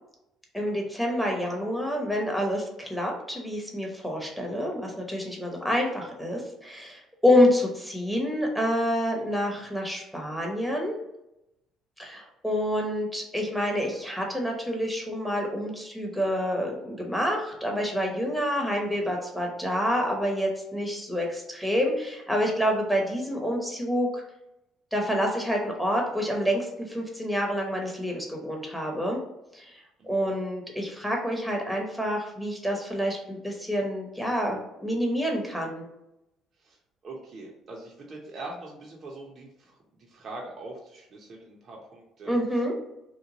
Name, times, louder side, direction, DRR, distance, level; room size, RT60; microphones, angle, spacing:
voice 1, 0.5-11.0 12.0-24.2 24.9-29.2 29.5-35.8 42.2-42.7, equal, ahead, 0 dB, 0.8 m, -28 dB
voice 2, 30.0-30.4 36.6-36.8 37.0-42.6, right 2 dB, 45° right, -2 dB, 0.6 m, -43 dB
2.9 x 2.1 x 3.8 m, 0.86 s
cardioid pair, 105°, 0 cm